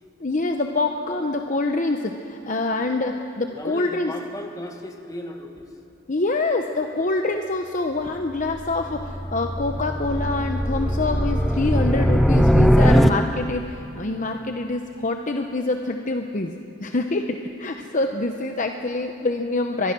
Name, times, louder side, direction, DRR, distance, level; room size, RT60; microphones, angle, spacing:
voice 1, 0.2-4.1 6.1-19.9, left 2 dB, 40° left, 5 dB, 0.9 m, -26 dB
voice 2, 3.5-5.8 8.1-8.2, left 1 dB, 15° left, 4 dB, 1.7 m, -36 dB
sound 1, 8.4-13.7, equal, ahead, 0.4 m, -20 dB
24.0 x 22.0 x 6.2 m, 2.8 s
head